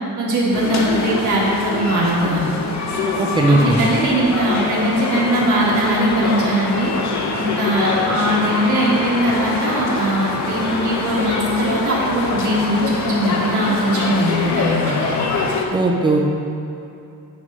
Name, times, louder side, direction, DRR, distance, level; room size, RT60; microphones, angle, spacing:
voice 1, 0.2-2.5 3.5-6.9 7.4-15.0, right 1 dB, 55° right, -6 dB, 1.5 m, -20 dB
sound 1, 0.5-15.6, left 3 dB, 50° left, 0.8 m, -24 dB
voice 2, 3.2-3.8 15.7-16.3, right 2 dB, 15° right, 1 dB, 0.6 m, -17 dB
6.2 x 6.1 x 5.3 m, 2.7 s
wide cardioid pair, 180°, 36 cm